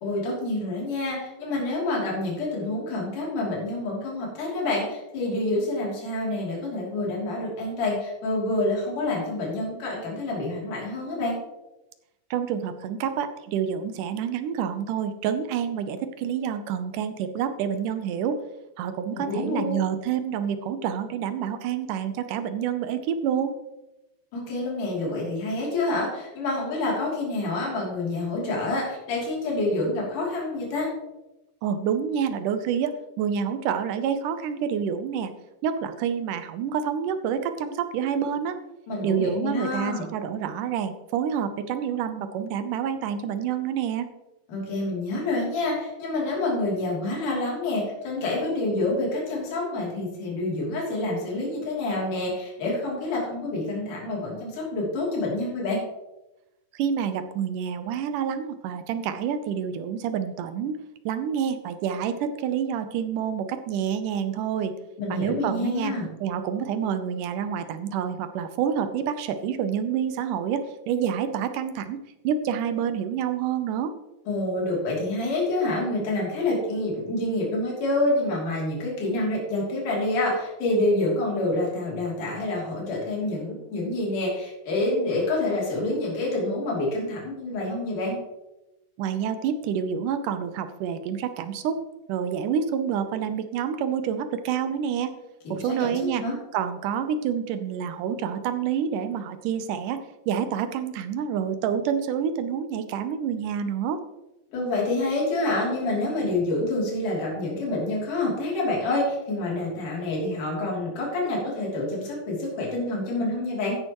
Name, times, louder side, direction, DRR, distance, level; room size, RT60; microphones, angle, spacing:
voice 1, 0.0-11.4 19.1-19.8 24.3-30.9 38.9-40.1 44.5-55.8 65.0-66.1 74.3-88.2 95.4-96.4 104.5-113.8, left 2 dB, 65° left, -3 dB, 4.6 m, -27 dB
voice 2, 12.3-18.4 18.8-23.5 31.6-35.3 35.6-38.6 39.0-44.1 56.7-60.8 61.1-64.7 65.1-73.9 89.0-91.8 92.1-95.1 95.5-96.2 96.5-104.0, right 8 dB, 75° right, 10 dB, 2.2 m, -28 dB
13.5 x 10.0 x 3.1 m, 0.98 s
omnidirectional pair, 4.0 m